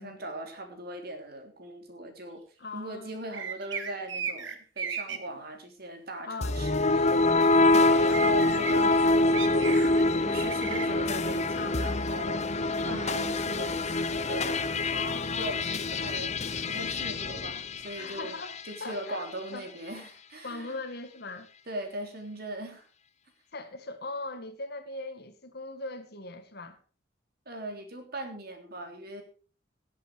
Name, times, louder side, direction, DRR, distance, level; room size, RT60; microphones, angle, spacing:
voice 1, 0.0-2.4 2.7-7.1 7.7-9.9 10.3-12.5 12.8-15.0 15.4-18.3 18.7-20.8 21.7-22.9 27.4-29.2, right 1 dB, 55° right, 3.4 m, -40 dB
voice 2, 2.6-3.1 5.1-5.2 6.2-6.6 6.9-7.8 11.5-11.8 14.9-15.6 17.9-19.3 19.5-19.7 20.4-21.5 23.5-26.8, left 3 dB, 55° left, 1.8 m, -40 dB
sound 1, 3.3-5.2 7.7-7.8 8.1-8.7 9.3-10.0 10.4-10.9, right 7 dB, 85° right, 1.8 m, -35 dB
sound 2, 6.4-18.7, left 2 dB, 35° left, 0.9 m, -26 dB
18.0 x 8.3 x 4.7 m
head